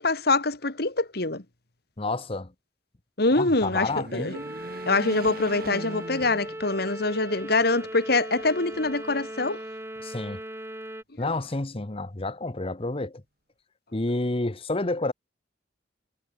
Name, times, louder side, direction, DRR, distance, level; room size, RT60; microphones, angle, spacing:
voice 1, 0.0-1.4 3.2-4.4 4.9-9.6, left 3 dB, 60° left, 2.4 m, -24 dB
voice 2, 2.0-2.5 3.4-4.3 10.0-10.4 11.2-13.2 13.9-15.1, left 2 dB, 35° left, 1.1 m, -29 dB
sound 1, 3.4-7.0 7.5-7.6 8.7-9.5, right 1 dB, 55° right, 5.2 m, -41 dB
sound 2, 4.3-11.0, right 1 dB, 15° right, 3.1 m, -38 dB
head